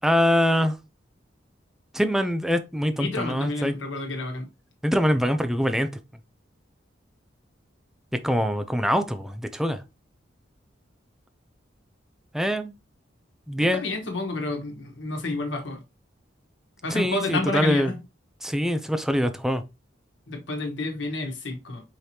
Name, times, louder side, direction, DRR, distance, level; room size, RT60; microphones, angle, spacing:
voice 1, 0.0-0.8 1.9-3.7 4.8-5.9 8.2-9.8 12.3-12.7 13.5-13.8 16.9-17.9 18.4-19.6, equal, ahead, 0.4 m, -24 dB
voice 2, 2.9-4.4 13.6-15.8 16.8-18.0 20.3-21.8, left 2 dB, 80° left, 1.3 m, -30 dB
4.9 x 3.1 x 2.7 m
head